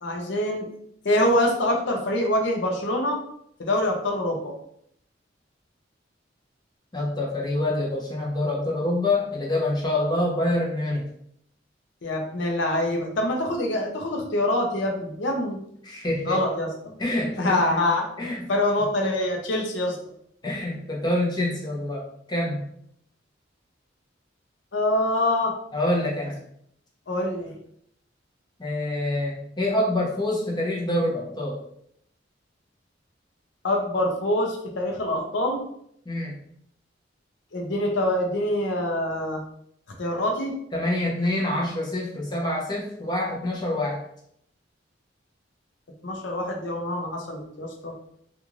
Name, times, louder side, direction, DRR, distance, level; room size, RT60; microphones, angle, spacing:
voice 1, 0.0-0.7 1.0-3.2 3.6-4.5 12.0-15.6 16.2-16.7 17.3-20.0 24.7-25.5 27.1-27.5 33.6-35.6 37.5-39.4 40.0-40.5 46.0-47.9, left 1 dB, 70° left, 1 dB, 0.6 m, -25 dB
voice 2, 6.9-11.1 15.8-16.4 17.0-17.5 18.2-18.4 20.4-22.0 22.3-22.6 25.7-26.3 28.6-31.6 36.0-36.3 40.7-44.0, left 1 dB, 25° left, -4 dB, 0.8 m, -26 dB
2.5 x 2.4 x 3.0 m, 0.70 s
head